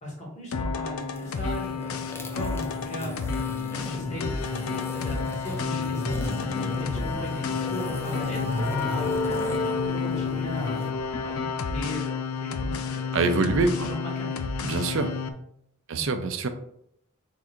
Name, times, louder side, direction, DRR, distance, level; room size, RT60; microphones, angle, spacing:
voice 1, 0.0-3.4 3.7-9.2 9.6-14.5 15.9-16.1, equal, 35° left, -4 dB, 1.4 m, -38 dB
sound 1, 0.5-15.3, left 5 dB, 90° left, 0.4 m, -30 dB
sound 2, 1.0-10.9, equal, 10° left, 0.5 m, -36 dB
sound 3, 7.1-11.0, left 2 dB, 55° left, 1.3 m, -34 dB
voice 2, 13.1-13.9 14.6-15.1 15.9-16.5, right 3 dB, 65° right, 8 dB, 0.5 m, -25 dB
3.7 x 2.4 x 4.3 m, 0.72 s
head